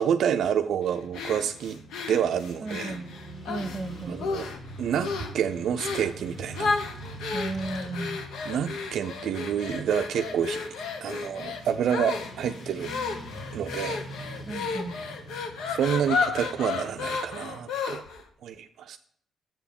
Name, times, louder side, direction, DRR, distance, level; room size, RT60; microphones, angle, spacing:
voice 1, 0.0-1.8 2.1-3.0 4.1-4.5 4.8-6.7 8.4-10.6 11.0-12.9 13.5-14.0 15.7-18.0 18.4-19.0, right 8 dB, 70° right, 7 dB, 0.4 m, -28 dB
Motorcycle / Traffic noise roadway noise, 0.8-17.4, right 1 dB, 50° left, 2.5 m, -44 dB
sound 1, 1.1-3.8 4.2-4.7 5.0-5.4 5.8-6.1 6.5-18.2, left 4 dB, 80° left, 0.9 m, -33 dB
voice 2, 2.6-3.0 3.5-4.2 7.3-8.3 14.4-15.0, right 3 dB, 20° right, 9 dB, 1.1 m, -34 dB
7.5 x 4.9 x 5.1 m, 0.63 s
cardioid pair, 90°, 0 cm